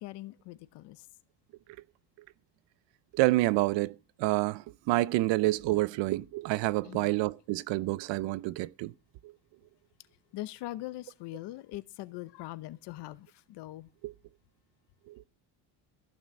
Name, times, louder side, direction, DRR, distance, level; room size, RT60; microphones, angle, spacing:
voice 1, 0.0-1.1 6.8-7.1 10.3-13.9, left 16 dB, 60° left, 1.0 m, -42 dB
voice 2, 3.1-8.9 9.2-9.3 14.0-14.1 15.1-15.2, right 18 dB, 70° right, 0.7 m, -28 dB
14.5 x 6.5 x 7.7 m
cardioid pair, 160°, 46 cm